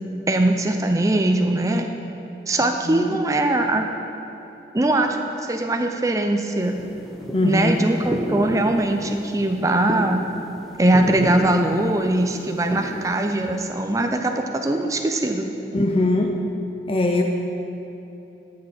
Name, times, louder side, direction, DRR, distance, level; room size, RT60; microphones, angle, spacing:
voice 1, 0.3-1.9 2.5-3.9 4.7-6.8 7.4-10.3 10.8-15.5, right 1 dB, 20° right, 5 dB, 0.5 m, -21 dB
voice 2, 2.9-3.2 7.3-7.8 15.7-16.3 16.9-17.2, left 2 dB, 30° left, 2 dB, 0.6 m, -21 dB
sound 1, 6.6-13.7, equal, ahead, 0.9 m, -32 dB
12.0 x 6.5 x 5.5 m, 3.0 s
head